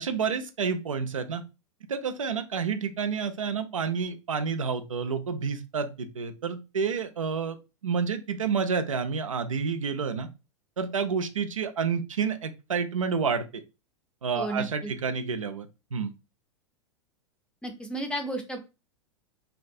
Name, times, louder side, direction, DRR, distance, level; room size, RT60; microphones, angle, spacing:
voice 1, 0.0-1.4 1.9-7.6 7.8-10.3 10.8-13.6 14.2-16.1, right 5 dB, 80° right, 9 dB, 0.4 m, -29 dB
voice 2, 14.3-14.9 17.6-18.6, right 1 dB, 5° left, 4 dB, 0.5 m, -33 dB
2.7 x 2.2 x 2.6 m, 0.28 s
figure-of-eight pair, 95°, 17 cm